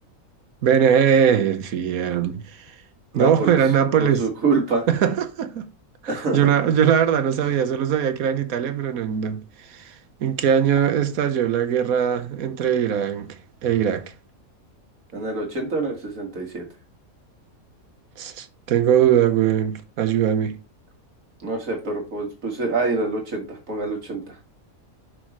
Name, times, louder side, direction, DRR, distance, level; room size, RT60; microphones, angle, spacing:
voice 1, 0.6-2.4 3.1-4.2 4.9-5.7 6.0-9.4 9.7-9.9 10.2-14.1 18.2-20.6, right 8 dB, 85° right, 1.3 m, -21 dB
voice 2, 3.1-3.6 4.0-4.9 6.1-6.5 15.1-16.6 21.4-24.4, right 3 dB, 65° right, 2.1 m, -26 dB
6.4 x 6.2 x 3.0 m
omnidirectional pair, 1.5 m